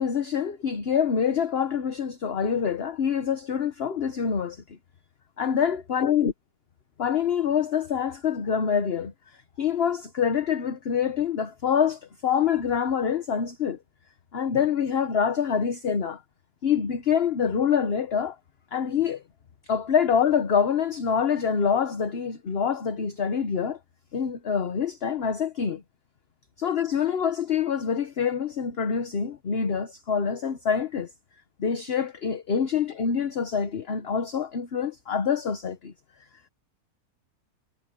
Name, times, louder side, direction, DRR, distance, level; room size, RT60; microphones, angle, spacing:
voice 1, 0.0-4.8 5.4-6.3 7.0-9.1 9.6-13.8 14.3-16.2 16.6-18.4 18.7-19.2 19.7-23.8 24.1-25.8 26.6-31.1 31.6-35.9, left 7 dB, 45° left, 1.1 m, -26 dB
omnidirectional pair, 1.6 m